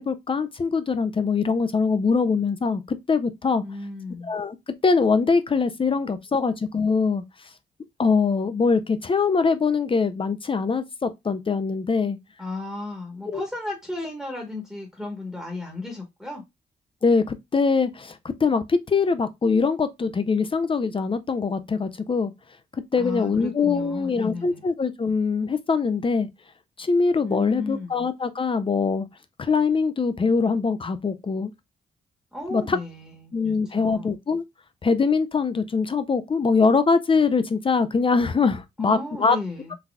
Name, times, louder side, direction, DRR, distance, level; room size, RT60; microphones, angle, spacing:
voice 1, 0.0-3.6 4.2-4.6 4.8-7.2 8.0-12.2 13.3-13.4 17.0-22.3 22.9-26.3 26.8-29.1 29.4-31.5 32.5-32.8 33.3-34.4 34.8-39.4, left 4 dB, 30° left, 0.4 m, -23 dB
voice 2, 3.6-4.3 12.4-16.4 23.0-24.6 27.2-28.0 32.3-33.3 33.7-34.1 38.8-39.7, left 2 dB, ahead, 1.1 m, -34 dB
3.9 x 2.7 x 2.3 m
cardioid pair, 95°, 19 cm